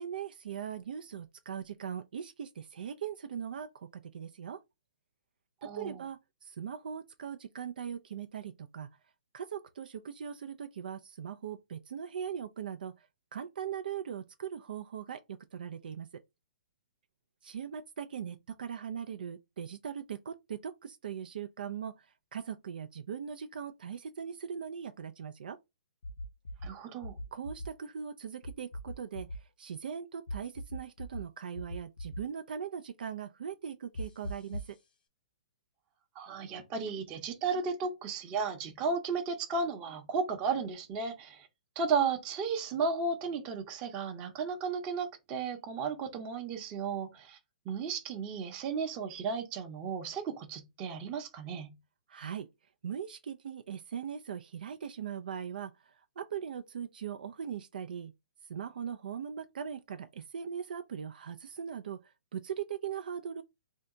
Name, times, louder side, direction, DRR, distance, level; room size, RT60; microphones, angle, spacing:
voice 1, 0.0-4.6 5.6-8.9 9.3-13.1 13.3-16.2 17.4-25.6 27.3-34.8 52.1-52.5 52.8-58.1 58.5-63.4, right 8 dB, 75° right, 0.3 m, -40 dB
voice 2, 5.6-6.0 26.6-27.2 36.2-41.5 41.8-47.4 47.7-51.7, right 5 dB, 25° right, 0.7 m, -34 dB
sound 1, 26.0-26.7 27.0-27.7 28.4-29.4 30.3-31.2 31.5-32.2 33.9-34.7, equal, 90° left, 0.9 m, -39 dB
2.6 x 2.2 x 3.7 m
hypercardioid pair, 150°, 5 cm